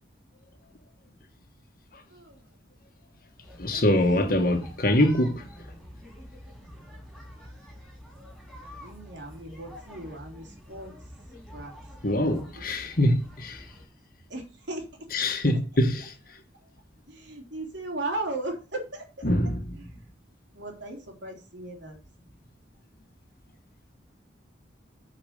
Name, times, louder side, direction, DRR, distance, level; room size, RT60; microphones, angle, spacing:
voice 1, 2.1-2.6 3.6-4.4 8.8-10.9 11.5-11.7 12.0-12.4 14.3-15.1 16.6-16.7 17.1-19.3 19.7-20.0 20.5-22.0, right 2 dB, 70° right, 3.2 m, -37 dB
sound 1, 3.4-13.8, equal, ahead, 3.9 m, -47 dB
voice 2, 3.6-5.5 12.0-13.7 15.1-16.1 19.2-19.6, left 1 dB, 50° left, 1.6 m, -24 dB
8.6 x 5.0 x 6.6 m
head